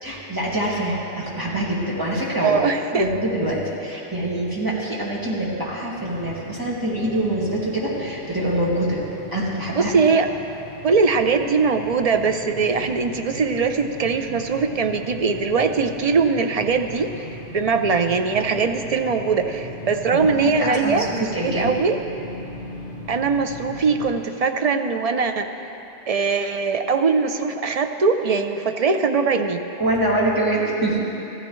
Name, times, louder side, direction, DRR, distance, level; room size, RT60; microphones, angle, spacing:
voice 1, 0.0-2.6 2.9-9.0 9.3-9.9 20.1-20.2 20.6-21.8 29.8-31.0, right 1 dB, 20° right, -6 dB, 2.2 m, -25 dB
voice 2, 2.4-3.1 9.8-10.3 10.8-17.3 17.5-22.0 23.1-25.5 26.1-29.6, right 4 dB, 45° right, 6 dB, 0.5 m, -21 dB
sound 1, 5.9-24.2, equal, 50° left, 3.3 m, -38 dB
15.0 x 14.0 x 3.1 m, 2.9 s
omnidirectional pair, 1.1 m